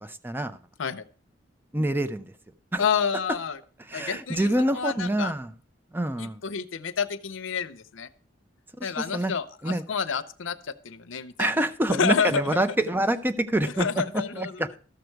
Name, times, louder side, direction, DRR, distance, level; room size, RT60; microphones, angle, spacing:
voice 1, 0.0-0.6 1.7-2.3 2.7-2.8 3.9-5.5 5.9-6.4 8.8-9.3 9.6-9.8 11.4-14.7, right 1 dB, 10° right, 11 dB, 0.5 m, -26 dB
voice 2, 2.8-3.6 3.9-5.3 6.2-8.1 8.8-11.5 12.0-12.6 13.8-14.5, left 6 dB, 80° left, 11 dB, 0.7 m, -29 dB
13.5 x 6.5 x 4.6 m, 0.40 s
head